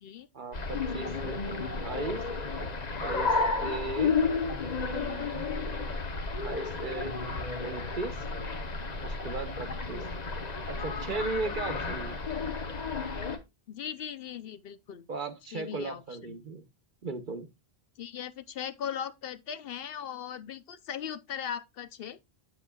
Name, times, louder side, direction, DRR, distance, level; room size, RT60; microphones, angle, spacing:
voice 1, 0.3-1.6 1.8-2.2 2.6-2.7 3.0-4.1 4.9-5.4 6.4-7.2 7.6-8.2 9.0-10.1 10.7-12.2 15.1-16.6 17.0-17.5, right 3 dB, 50° right, 1.1 m, -37 dB
sound 1, 0.5-13.4, left 4 dB, 45° left, 1.0 m, -32 dB
voice 2, 13.7-15.1 15.5-16.4 18.0-22.2, left 8 dB, 65° left, 0.8 m, -39 dB
8.2 x 8.2 x 2.3 m
omnidirectional pair, 1.1 m